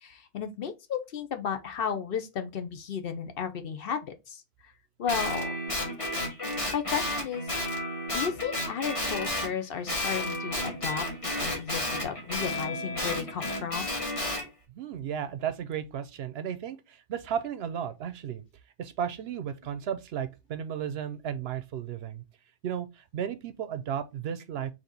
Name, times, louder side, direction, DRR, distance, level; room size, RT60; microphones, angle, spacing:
voice 1, 0.0-4.7 5.0-5.6 6.7-7.5 8.1-13.9, left 7 dB, 60° left, 0.8 m, -34 dB
Guitar, 5.1-9.5 9.9-14.4, left 1 dB, 30° left, 1.6 m, -32 dB
voice 2, 14.7-18.4 18.8-22.2 22.6-24.7, right 9 dB, 65° right, 0.8 m, -34 dB
4.3 x 2.9 x 3.9 m
omnidirectional pair, 1.2 m